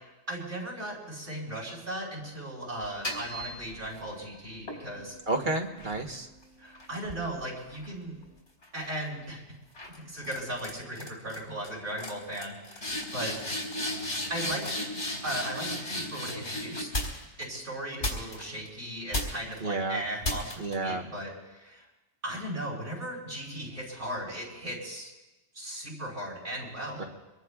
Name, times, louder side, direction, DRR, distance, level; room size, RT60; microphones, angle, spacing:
voice 1, 0.3-5.1 6.6-8.2 8.7-9.4 10.1-13.3 14.3-17.0 17.4-21.8 22.2-25.1 25.5-27.1, right 1 dB, 75° right, -5 dB, 6.4 m, -37 dB
sound 1, 2.8-4.1 4.7-8.2 8.6-9.0 9.7-10.0 10.2-10.7 10.9-11.4 11.6-11.7 12.0-17.4 18.0-18.7 19.1-19.6 20.2-20.7, left 1 dB, 80° left, 4.0 m, -35 dB
voice 2, 5.3-6.3 19.6-20.0 20.6-21.0 27.0-27.1, right 2 dB, 45° right, 2 dB, 1.4 m, -30 dB
25.5 x 22.0 x 2.4 m, 1.0 s
omnidirectional pair, 1.2 m